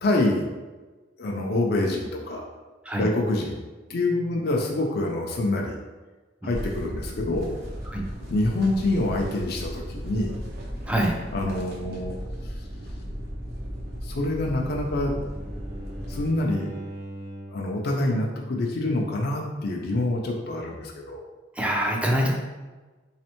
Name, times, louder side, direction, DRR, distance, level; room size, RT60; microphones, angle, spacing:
voice 1, 0.0-0.5 1.2-2.5 3.0-3.6 3.9-5.8 6.4-7.5 8.3-10.4 11.3-12.1 14.0-15.1 16.1-16.7 17.5-21.2, left 2 dB, 55° left, 0 dB, 0.5 m, -26 dB
sound 1, 6.5-16.3, equal, 55° right, 0.8 m, -36 dB
Bowed string instrument, 14.1-17.7, right 1 dB, 80° right, 1.1 m, -41 dB
voice 2, 21.6-22.3, right 1 dB, 5° right, 0 dB, 0.5 m, -24 dB
3.4 x 3.2 x 2.9 m, 1.3 s
head